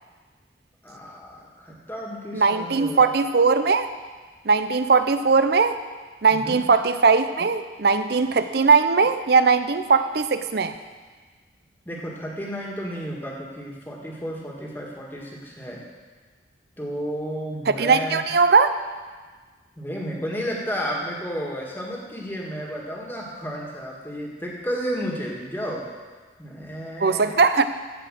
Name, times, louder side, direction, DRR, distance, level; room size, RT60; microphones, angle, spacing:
voice 1, 0.8-3.1 6.3-6.6 11.9-15.8 16.8-18.2 19.8-25.8 26.4-27.4, equal, 10° left, -2 dB, 1.7 m, -32 dB
voice 2, 2.3-3.9 4.4-5.8 6.2-10.7 17.7-18.7 27.0-27.7, right 4 dB, 55° right, 11 dB, 0.6 m, -19 dB
14.5 x 5.0 x 7.6 m, 1.4 s
head